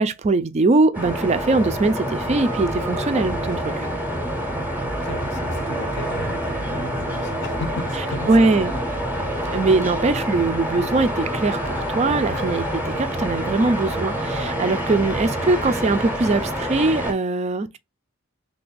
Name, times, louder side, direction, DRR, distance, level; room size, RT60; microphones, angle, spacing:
voice 1, 0.0-3.9 8.3-8.7 9.5-17.8, right 3 dB, 30° right, 0.3 m, -21 dB
sound 1, 0.9-17.1, equal, 10° right, 0.7 m, -27 dB
sound 2, 3.1-16.3, right 3 dB, 85° right, 0.6 m, -40 dB
voice 2, 5.0-8.8 12.3-12.5 14.9-15.1, left 2 dB, 55° left, 0.7 m, -35 dB
Wind instrument woodwind instrument, 8.1-15.8, left 3 dB, 85° left, 1.1 m, -42 dB
3.4 x 2.5 x 3.8 m
head